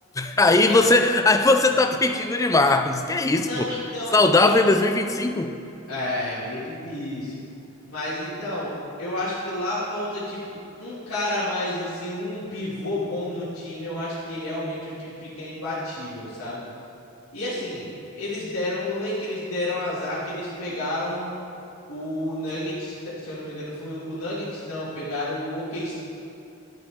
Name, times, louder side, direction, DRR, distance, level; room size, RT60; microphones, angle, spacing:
voice 1, 0.2-3.7 4.1-5.5, left 2 dB, 15° left, 7 dB, 0.3 m, -19 dB
voice 2, 0.7-1.0 3.4-4.5 5.9-7.3 7.9-8.7 9.0-16.6 17.3-21.3 21.9-25.9, left 1 dB, 85° left, -12 dB, 2.2 m, -30 dB
11.0 x 8.0 x 3.5 m, 2.7 s
head